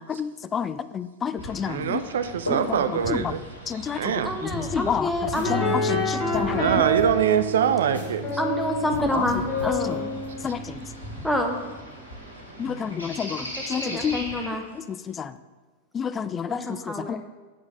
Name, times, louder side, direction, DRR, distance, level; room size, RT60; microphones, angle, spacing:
voice 1, 0.0-2.0 2.5-2.8 3.1-3.3 3.7-4.0 4.4-5.1 5.5-6.8 9.1-9.2 9.8-10.0 10.4-10.8 12.6-14.2 15.1-15.3 15.9-17.2, left 7 dB, 20° left, 14 dB, 0.3 m, -29 dB
sound 1, 1.4-14.5, equal, 80° left, 1.8 m, -38 dB
voice 2, 1.6-3.4 3.9-4.4 6.5-8.3 10.5-10.9 12.5-13.0, right 8 dB, 60° right, 11 dB, 0.5 m, -25 dB
voice 3, 4.2-5.6 8.4-10.1 11.2-11.6 13.4-14.6 16.5-17.2, left 1 dB, ahead, 2 dB, 1.0 m, -28 dB
sound 2, 5.2-5.7 6.0-6.1 6.3-8.3 8.6-8.7 8.9-10.4, left 2 dB, 85° right, 1.8 m, -39 dB
sound 3, 5.4-11.6, equal, 40° left, 2.0 m, -28 dB
8.4 x 4.7 x 5.2 m, 1.3 s
figure-of-eight pair, 90°, 0 cm